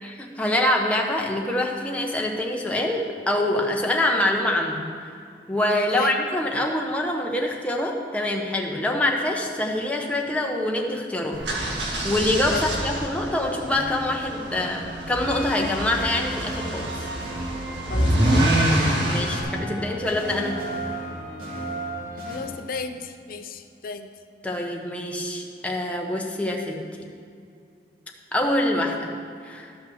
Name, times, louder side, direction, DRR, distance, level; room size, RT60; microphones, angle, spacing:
voice 1, 0.0-4.8 5.5-11.4 12.0-17.0 19.0-20.6 24.4-26.8 28.3-29.1 29.4-29.7, left 1 dB, 10° left, 0 dB, 1.0 m, -25 dB
sound 1, 11.3-19.4, right 1 dB, 85° right, 1.9 m, -26 dB
sound 2, 15.2-22.4, right 1 dB, 55° right, 2.8 m, -34 dB
voice 2, 17.8-19.2 22.3-24.1, left 4 dB, 55° left, 8 dB, 0.6 m, -35 dB
13.0 x 5.7 x 6.4 m, 2.3 s
head